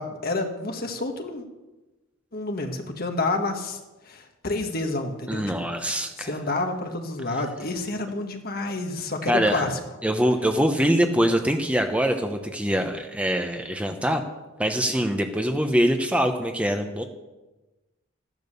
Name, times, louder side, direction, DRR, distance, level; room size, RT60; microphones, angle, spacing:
voice 1, 0.0-1.4 2.3-3.8 4.0-5.4 6.2-9.8, left 2 dB, 45° left, 4 dB, 1.6 m, -29 dB
voice 2, 5.3-6.3 9.3-9.7 10.0-14.2 14.6-17.0, equal, 5° right, 5 dB, 0.9 m, -23 dB
14.5 x 10.5 x 6.9 m, 1.1 s
head